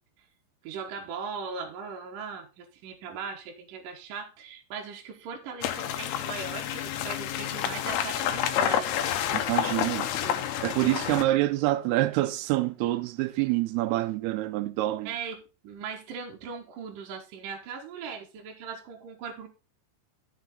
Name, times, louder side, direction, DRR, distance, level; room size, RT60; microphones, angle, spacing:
voice 1, 0.6-9.9 10.2-10.5 15.1-19.5, right 5 dB, 65° right, 2.4 m, -39 dB
sound 1, 5.6-11.2, left 10 dB, 75° left, 2.5 m, -29 dB
voice 2, 9.3-10.1 10.6-15.1, right 17 dB, 90° right, 2.2 m, -26 dB
11.5 x 6.7 x 3.7 m
omnidirectional pair, 5.2 m